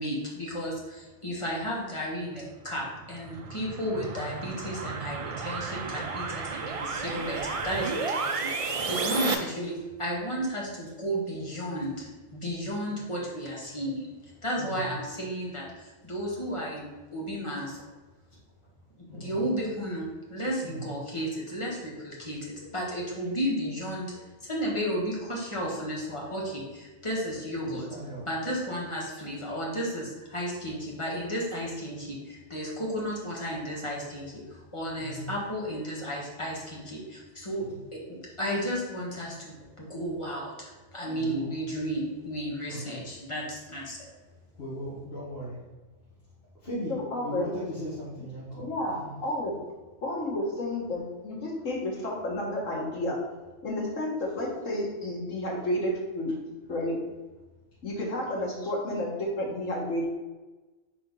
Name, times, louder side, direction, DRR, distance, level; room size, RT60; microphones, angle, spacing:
voice 1, 0.0-9.7 10.0-17.8 19.1-27.9 28.3-37.6 37.9-44.1, equal, 25° left, -4 dB, 1.5 m, -33 dB
sound 1, 2.8-9.3, right 4 dB, 60° right, 0.3 m, -32 dB
voice 2, 14.6-15.0 19.1-19.5 20.6-20.9 27.6-28.3 34.9-35.3 37.7-37.8 41.1-41.5 42.7-43.1 44.6-45.6 46.6-46.9 47.2-48.7 49.0-49.2, equal, 55° left, -10 dB, 1.9 m, -38 dB
voice 3, 46.9-47.5 48.6-49.5 50.0-53.2 53.6-56.3 56.7-57.0 57.8-60.0, left 1 dB, 90° left, -3 dB, 1.8 m, -31 dB
4.4 x 4.3 x 5.3 m, 1.2 s
omnidirectional pair, 1.3 m